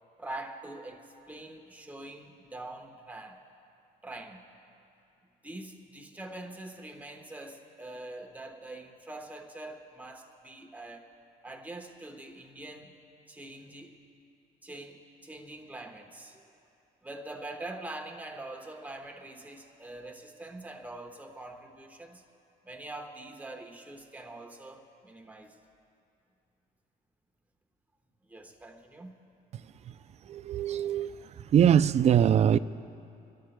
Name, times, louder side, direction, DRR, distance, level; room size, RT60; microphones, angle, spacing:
voice 1, 0.2-1.0 1.3-3.4 4.0-4.4 5.4-11.2 11.4-12.9 13.3-14.0 14.6-16.4 17.0-22.2 22.6-25.5 28.3-29.1, right 2 dB, 10° right, 1.2 m, -44 dB
voice 2, 30.3-31.1 31.5-32.6, right 9 dB, 40° right, 0.4 m, -22 dB
29.5 x 13.0 x 2.2 m
cardioid pair, 110°, 17 cm